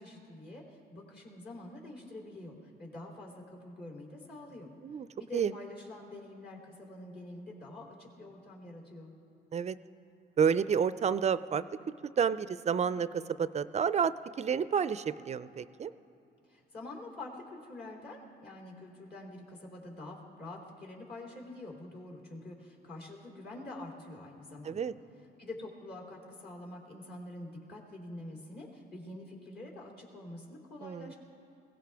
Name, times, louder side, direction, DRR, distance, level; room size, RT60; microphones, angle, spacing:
voice 1, 0.0-4.7 5.2-9.1 16.5-24.9 25.4-31.1, left 2 dB, 55° left, -1 dB, 3.3 m, -46 dB
voice 2, 10.4-11.6 12.2-15.9 24.6-24.9 30.8-31.1, right 7 dB, 35° right, 15 dB, 0.4 m, -30 dB
21.5 x 17.0 x 3.5 m, 2.8 s
cardioid pair, 90°, 20 cm